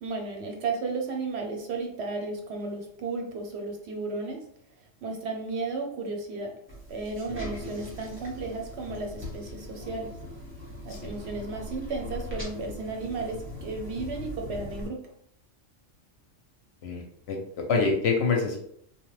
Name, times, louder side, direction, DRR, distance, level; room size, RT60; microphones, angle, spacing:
voice 1, 0.0-4.4 5.0-6.5 6.9-10.1 10.8-13.4 13.6-15.0, right 3 dB, 65° right, 2 dB, 0.7 m, -34 dB
sound 1, 6.7-14.9, left 1 dB, 10° right, 0.8 m, -40 dB
voice 2, 17.3-18.6, left 4 dB, 65° left, 1 dB, 0.7 m, -26 dB
3.0 x 2.1 x 3.1 m, 0.68 s
omnidirectional pair, 1.3 m